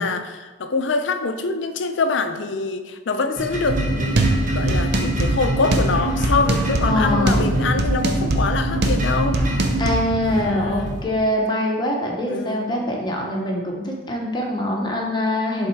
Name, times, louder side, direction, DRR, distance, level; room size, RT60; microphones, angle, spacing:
voice 1, 0.0-9.4 10.4-11.0 12.2-12.9, left 4 dB, 85° left, 8 dB, 0.5 m, -25 dB
sound 1, 3.4-11.0, equal, 45° right, 1.1 m, -29 dB
sound 2, 3.7-9.9, right 1 dB, 60° right, 0.7 m, -22 dB
voice 2, 6.9-7.5 9.8-15.7, left 1 dB, 25° left, -1 dB, 0.9 m, -23 dB
7.2 x 3.6 x 4.6 m, 1.2 s
head